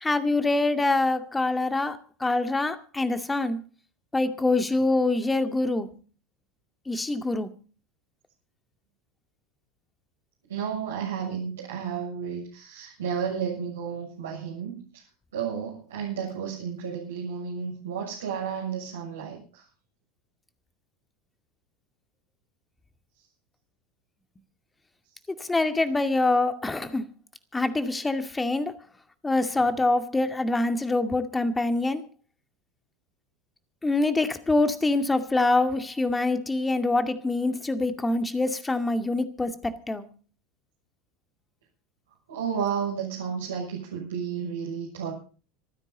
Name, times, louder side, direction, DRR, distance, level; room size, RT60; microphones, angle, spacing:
voice 1, 0.0-3.6 4.1-5.9 6.9-7.5 25.4-27.1 27.5-28.7 29.2-32.0 33.8-40.1, left 2 dB, 15° left, 2.2 m, -25 dB
voice 2, 10.5-14.7 15.3-19.6 42.3-45.1, right 7 dB, 80° right, 7.1 m, -32 dB
26.5 x 9.8 x 4.1 m
hypercardioid pair, 80°, 0 cm